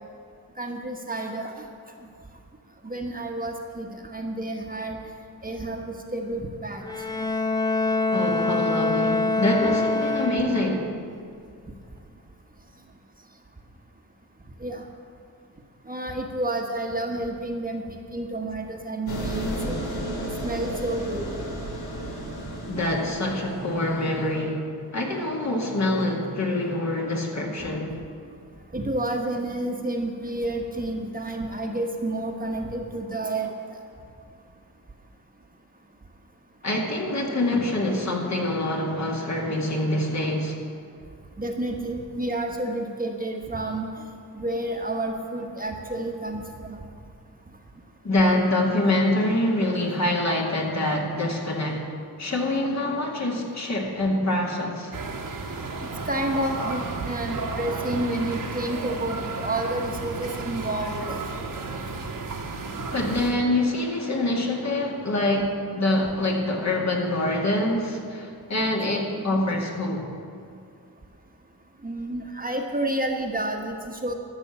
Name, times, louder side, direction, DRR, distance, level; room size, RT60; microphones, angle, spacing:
voice 1, 0.6-1.7 2.8-5.0 5.4-6.8 14.6-14.8 15.9-19.8 20.2-21.2 28.7-33.5 41.4-43.9 44.3-46.8 56.1-61.2 71.8-74.1, right 1 dB, 25° right, 2 dB, 1.2 m, -30 dB
Bowed string instrument, 6.8-10.9, left 2 dB, 10° left, 0.8 m, -25 dB
voice 2, 8.1-10.9 22.7-28.0 36.6-40.6 48.0-54.9 62.9-70.1, left 1 dB, 45° left, -1 dB, 2.1 m, -25 dB
sound 1, 19.1-24.4, equal, 70° left, 2.4 m, -33 dB
sound 2, 54.9-63.4, right 3 dB, 60° right, 1.3 m, -33 dB
13.5 x 6.0 x 7.2 m, 2.3 s
cardioid pair, 70°, 38 cm